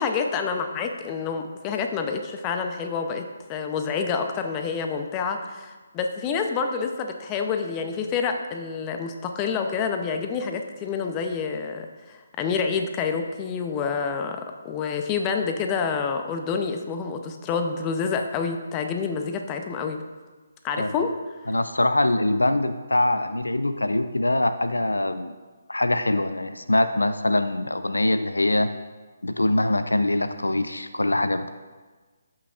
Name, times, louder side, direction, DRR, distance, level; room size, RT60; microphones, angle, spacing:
voice 1, 0.0-20.0 20.6-21.1, left 5 dB, 20° left, 5 dB, 0.6 m, -28 dB
voice 2, 21.5-25.3 25.7-28.7 29.2-31.5, left 1 dB, 85° left, 11 dB, 0.4 m, -23 dB
14.0 x 5.9 x 2.5 m, 1.3 s
figure-of-eight pair, 145°, 0 cm